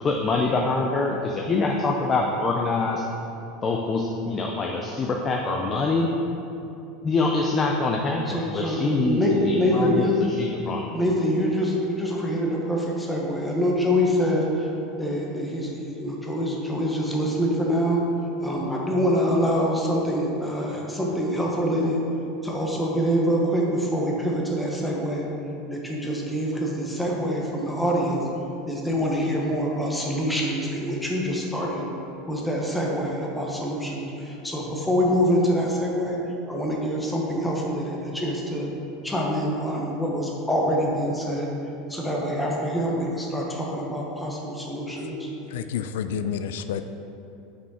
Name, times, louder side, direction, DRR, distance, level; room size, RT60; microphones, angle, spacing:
voice 1, 0.0-3.1 3.6-6.1 7.0-10.9, left 3 dB, 20° left, 0 dB, 0.4 m, -25 dB
voice 2, 8.3-10.2 10.9-14.7 15.0-22.0 22.4-25.3 25.7-28.2 28.7-31.8 32.3-36.2 36.5-38.7 39.0-41.5 41.9-45.3, equal, 5° left, -2 dB, 0.9 m, -25 dB
voice 3, 45.5-46.8, left 8 dB, 90° left, 10 dB, 0.3 m, -29 dB
5.9 x 5.3 x 4.8 m, 2.9 s
supercardioid pair, 165°, 0 cm